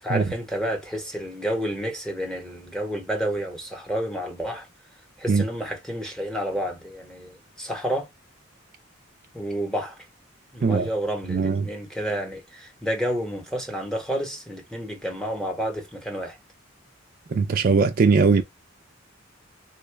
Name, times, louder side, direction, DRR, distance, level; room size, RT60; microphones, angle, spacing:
voice 1, 0.0-4.7 5.2-8.1 9.3-10.0 10.5-16.4, equal, 5° left, 0.9 m, -30 dB
voice 2, 11.3-11.7 17.3-18.4, right 4 dB, 45° right, 0.4 m, -20 dB
3.7 x 2.2 x 3.3 m
head